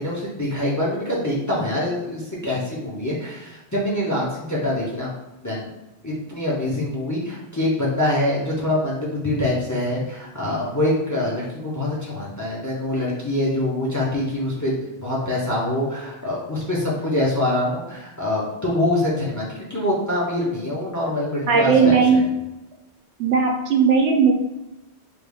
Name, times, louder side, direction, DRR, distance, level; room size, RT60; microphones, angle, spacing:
voice 1, 0.0-5.1 5.4-5.7 6.0-22.3, left 1 dB, 25° left, -5 dB, 0.5 m, -25 dB
voice 2, 21.5-22.2 23.2-24.3, right 5 dB, 90° right, 2 dB, 0.9 m, -17 dB
3.3 x 2.3 x 3.4 m, 0.97 s
omnidirectional pair, 1.1 m